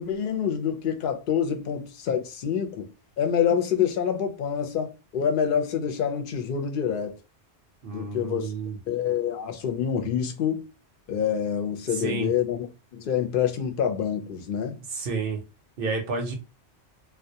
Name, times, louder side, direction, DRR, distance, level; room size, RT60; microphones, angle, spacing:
voice 1, 0.0-2.9 3.2-7.2 7.9-8.5 8.9-10.6 11.1-12.7 12.9-14.8, left 8 dB, 60° left, 0.6 m, -26 dB
voice 2, 7.8-8.8 11.9-12.3 14.9-15.4 15.8-16.3, right 4 dB, 60° right, 0.7 m, -30 dB
2.2 x 2.0 x 2.7 m
omnidirectional pair, 1.2 m